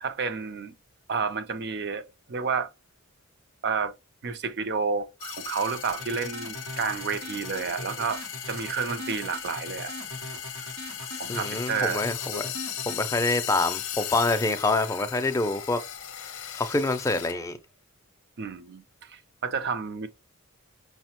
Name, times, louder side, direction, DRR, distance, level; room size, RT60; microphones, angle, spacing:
voice 1, 0.0-0.7 1.1-2.0 2.3-2.7 3.6-3.9 4.2-8.2 8.5-9.9 10.6-10.7 11.0-12.0 18.4-18.8 19.4-20.1, right 5 dB, 50° right, 0.4 m, -30 dB
sound 1, 5.2-17.3, left 9 dB, 65° left, 0.6 m, -37 dB
sound 2, 5.9-13.0, right 1 dB, 75° right, 0.8 m, -41 dB
voice 2, 11.3-12.5 12.9-15.8 16.5-17.6, left 2 dB, 15° left, 0.4 m, -26 dB
5.5 x 2.1 x 2.9 m
head